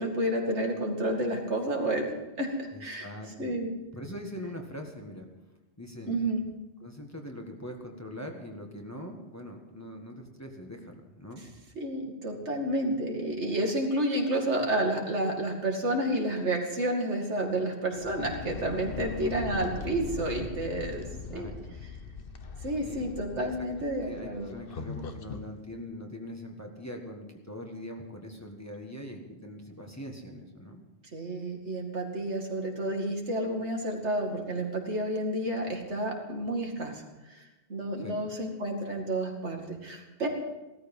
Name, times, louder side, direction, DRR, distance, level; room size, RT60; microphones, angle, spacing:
voice 1, 0.0-3.1 3.4-3.7 6.1-6.4 11.8-21.0 21.3-21.5 22.6-24.5 31.1-40.3, right 1 dB, 90° right, 1 dB, 2.7 m, -30 dB
voice 2, 2.7-3.6 3.9-5.3 5.8-6.2 6.8-11.4 21.3-21.8 22.8-23.1 23.3-23.7 24.0-30.8 38.0-38.2, left 1 dB, 15° left, 1 dB, 1.7 m, -42 dB
sound 1, 17.9-25.5, left 4 dB, 55° left, 1.2 m, -40 dB
17.0 x 13.5 x 5.5 m, 1.0 s
omnidirectional pair, 1.1 m